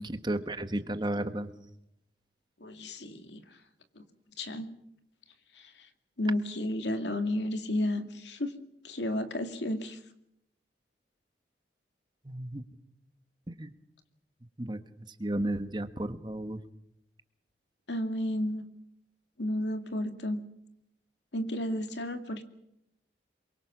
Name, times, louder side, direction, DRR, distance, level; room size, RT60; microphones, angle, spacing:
voice 1, 0.0-1.5 12.2-12.6 13.5-13.7 14.6-14.8 15.2-16.6, right 1 dB, 25° right, 10 dB, 1.3 m, -33 dB
voice 2, 2.6-3.4 4.4-4.7 5.6-5.7 6.2-8.5 8.8-10.0 17.9-18.7 19.4-20.4 21.3-22.4, left 1 dB, 85° left, 8 dB, 2.2 m, -32 dB
27.0 x 23.5 x 6.1 m, 0.79 s
head